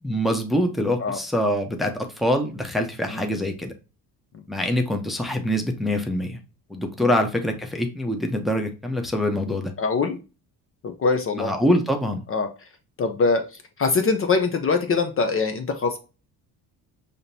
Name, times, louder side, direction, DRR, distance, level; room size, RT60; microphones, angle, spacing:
voice 1, 0.0-3.7 4.5-6.4 6.7-9.7 11.3-12.2, equal, ahead, 3 dB, 0.7 m, -24 dB
voice 2, 9.8-10.2 10.8-11.5 12.3-12.5 13.0-13.4 13.8-16.0, left 4 dB, 35° left, 6 dB, 0.6 m, -23 dB
5.0 x 2.8 x 2.7 m, 0.31 s
cardioid pair, 105°, 38 cm